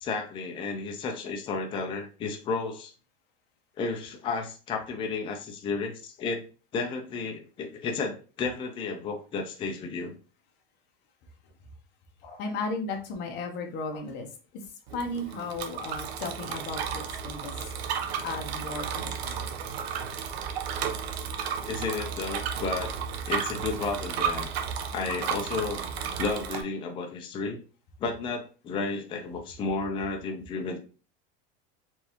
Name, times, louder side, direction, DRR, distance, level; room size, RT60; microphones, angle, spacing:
voice 1, 0.0-2.9 3.8-6.4 6.7-10.1 12.2-12.4 21.7-23.0 23.3-24.5 24.9-25.8 26.2-27.6 28.0-30.8, left 4 dB, 15° left, 3 dB, 0.5 m, -32 dB
voice 2, 12.4-17.7 18.2-19.6, left 3 dB, 35° left, 3 dB, 1.0 m, -35 dB
Bicycle, 14.9-26.6, right 7 dB, 85° right, 0.9 m, -33 dB
4.5 x 3.3 x 2.9 m, 0.36 s
supercardioid pair, 165°, 31 cm